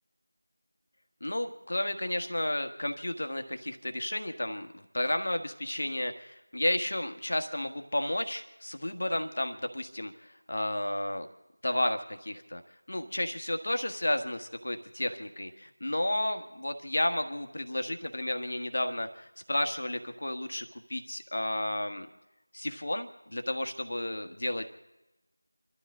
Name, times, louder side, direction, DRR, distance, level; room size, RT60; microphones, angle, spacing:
voice 1, 1.2-11.3 11.6-12.6 12.9-22.1 22.5-24.6, left 1 dB, 50° left, 6 dB, 1.5 m, -32 dB
29.0 x 12.5 x 3.7 m, 1.0 s
figure-of-eight pair, 175°, 0 cm